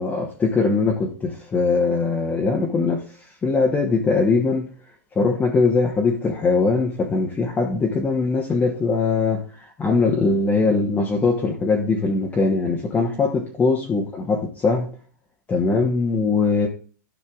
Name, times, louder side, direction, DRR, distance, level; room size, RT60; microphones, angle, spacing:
voice 1, 0.0-3.0 3.4-4.7 5.1-14.9 15.5-16.7, left 4 dB, 15° left, 1.0 m, -21 dB
12.5 x 5.5 x 2.4 m
hypercardioid pair, 125°, 10 cm